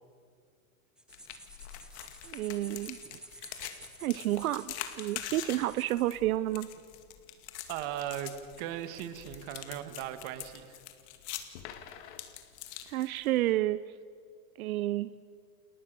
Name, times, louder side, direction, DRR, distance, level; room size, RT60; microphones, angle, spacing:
sound 1, 1.0-6.2, right 1 dB, ahead, 0.8 m, -52 dB
sound 2, 1.1-13.5, left 12 dB, 50° left, 2.3 m, -44 dB
voice 1, 2.2-3.0 3.4-3.5 4.0-6.7 12.9-13.8 14.6-15.1, right 15 dB, 75° right, 15 dB, 0.8 m, -30 dB
voice 2, 7.7-10.8, right 11 dB, 40° right, 10 dB, 1.9 m, -38 dB
29.5 x 28.5 x 6.9 m, 2.2 s
supercardioid pair, 160°, 42 cm